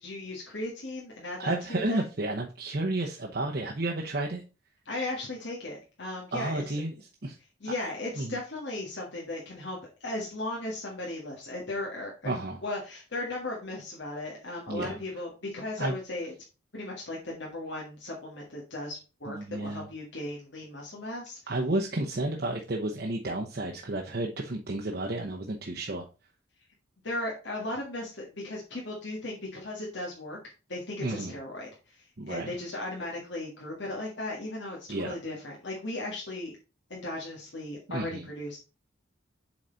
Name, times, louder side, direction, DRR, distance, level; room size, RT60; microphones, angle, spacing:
voice 1, 0.0-2.0 4.9-6.8 7.6-16.3 16.7-21.4 27.0-30.4 30.7-36.6 36.9-38.6, left 2 dB, 60° left, -3 dB, 1.7 m, -36 dB
voice 2, 1.4-4.4 6.3-6.9 7.2-7.4 8.2-8.4 12.2-12.6 14.7-15.0 15.8-15.9 19.3-19.9 21.5-26.0 31.0-31.3 32.2-32.5 34.9-35.2 37.9-38.2, right 2 dB, 50° right, -1 dB, 0.8 m, -31 dB
7.5 x 4.1 x 3.9 m, 0.32 s
head